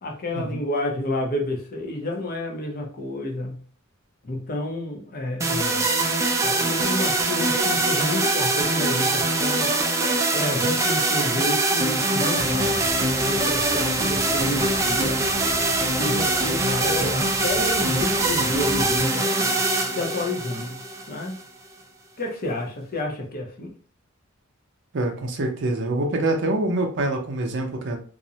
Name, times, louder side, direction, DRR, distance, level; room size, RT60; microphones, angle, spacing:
voice 1, 0.0-3.6 4.2-5.8 6.4-9.7 10.3-12.9 13.2-15.2 16.0-19.3 19.9-20.8 21.1-21.4 22.2-23.7, left 1 dB, 45° left, 0.6 m, -30 dB
sound 1, 5.4-21.4, right 2 dB, 15° right, 0.3 m, -23 dB
sound 2, 12.4-19.1, equal, 5° left, 0.9 m, -40 dB
voice 2, 24.9-28.0, right 2 dB, 60° right, 0.5 m, -25 dB
2.4 x 2.0 x 2.7 m
head